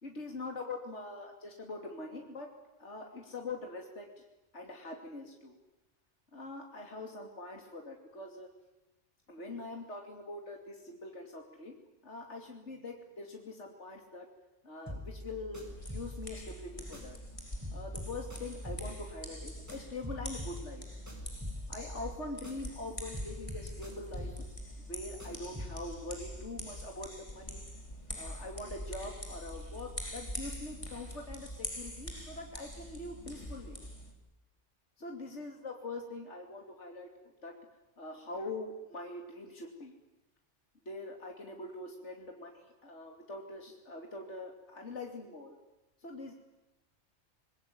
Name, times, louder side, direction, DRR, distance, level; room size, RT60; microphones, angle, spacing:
voice 1, 0.0-2.5 2.8-4.1 4.5-5.6 6.3-8.5 9.3-11.8 12.0-14.3 14.6-17.2 17.7-20.8 21.7-24.3 24.9-27.6 28.2-33.8 35.0-37.1 37.4-37.6 38.0-39.9 40.8-45.6 46.0-46.3, left 2 dB, 65° left, 2 dB, 3.2 m, -43 dB
sound 1, 14.9-17.3 17.6-22.8 23.1-25.9, left 1 dB, 15° right, 6.2 m, -45 dB
sound 2, 15.7-34.1, equal, 25° left, 4.2 m, -44 dB
27.5 x 21.5 x 9.6 m, 0.99 s
omnidirectional pair, 1.3 m